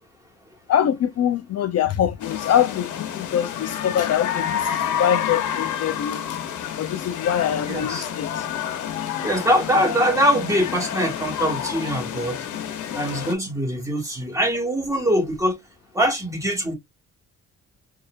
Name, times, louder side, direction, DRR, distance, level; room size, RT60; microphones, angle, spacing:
voice 1, 0.7-6.4 6.8-8.4, left 9 dB, 55° left, 0.5 m, -24 dB
sound 1, 2.2-13.3, left 9 dB, 80° left, 1.1 m, -29 dB
voice 2, 7.7-8.0 9.2-12.4 12.9-15.6 15.9-16.7, equal, 10° right, 1.8 m, -23 dB
4.1 x 2.8 x 2.4 m
cardioid pair, 90°, 30 cm